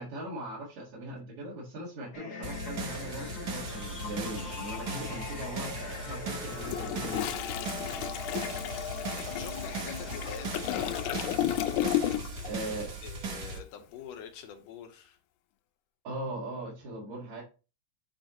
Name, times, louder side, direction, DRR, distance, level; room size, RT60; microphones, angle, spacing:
voice 1, 0.0-7.3 12.4-12.9 16.0-17.4, right 1 dB, 75° right, 3.0 m, -39 dB
sound 1, 2.1-11.2, left 6 dB, 50° left, 1.3 m, -41 dB
sound 2, 2.4-13.6, right 3 dB, 50° right, 1.4 m, -38 dB
Toilet flush, 6.5-12.5 12.8-13.0, left 12 dB, 90° left, 2.0 m, -33 dB
voice 2, 9.4-11.0 12.4-15.2, left 8 dB, 70° left, 2.0 m, -45 dB
10.5 x 4.1 x 3.0 m
omnidirectional pair, 3.3 m